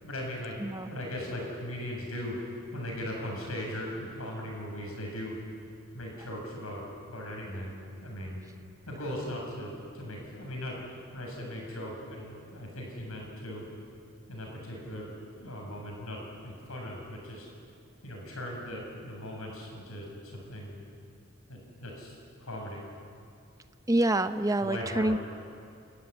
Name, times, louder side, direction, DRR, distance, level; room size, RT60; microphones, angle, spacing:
voice 1, 0.0-5.4 5.9-8.4 8.9-10.8 11.1-13.6 14.3-15.1 15.4-17.5 18.0-20.8 21.5-22.8 24.6-25.2, left 1 dB, 85° left, 0 dB, 7.5 m, -38 dB
voice 2, 0.6-0.9 23.9-25.2, right 1 dB, 15° right, 10 dB, 0.7 m, -26 dB
29.0 x 13.5 x 10.0 m, 2.4 s
head